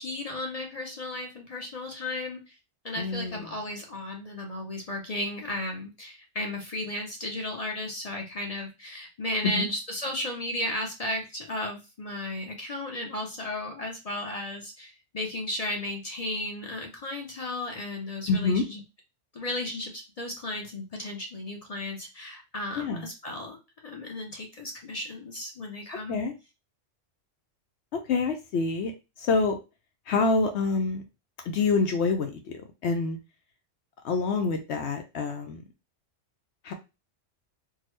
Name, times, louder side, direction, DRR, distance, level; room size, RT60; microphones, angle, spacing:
voice 1, 0.0-2.6 2.8-18.8 19.3-23.6 23.8-26.2, left 1 dB, 40° left, 1 dB, 0.6 m, -34 dB
voice 2, 3.0-3.5 9.4-9.7 18.3-18.6 22.8-23.1 26.1-26.3 27.9-28.9 29.2-29.6 30.1-31.0 31.5-32.5 32.8-33.2 34.0-35.6 36.6-36.7, left 4 dB, 70° left, 5 dB, 0.8 m, -26 dB
3.7 x 2.1 x 3.1 m, 0.27 s
omnidirectional pair, 1.3 m